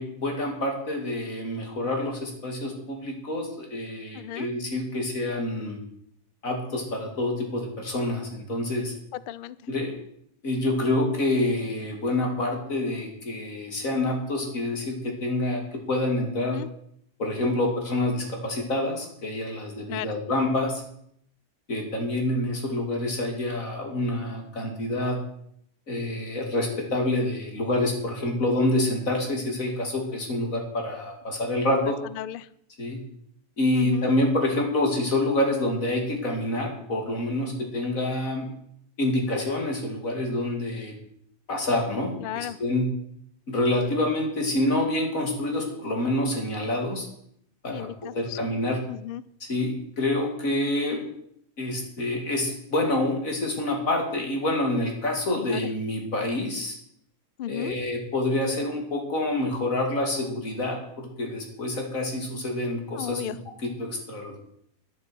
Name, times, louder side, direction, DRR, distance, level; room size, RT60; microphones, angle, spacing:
voice 1, 0.0-5.8 6.4-8.9 9.7-9.9 10.4-16.6 17.2-20.8 21.7-25.2 25.9-32.0 32.8-33.0 33.6-38.5 39.0-40.9 41.5-42.9 43.5-47.1 47.6-48.8 49.5-51.0 51.6-56.8 57.5-63.4 63.6-64.4, left 1 dB, 60° left, 2 dB, 3.1 m, -27 dB
voice 2, 4.1-4.5 9.1-9.6 16.4-16.7 19.9-20.2 31.8-32.5 33.7-34.1 42.2-42.6 47.7-48.4 48.9-49.2 55.4-55.6 57.4-57.8 62.9-63.4, left 11 dB, 85° left, 17 dB, 0.4 m, -35 dB
10.5 x 10.5 x 6.1 m, 0.70 s
omnidirectional pair, 1.6 m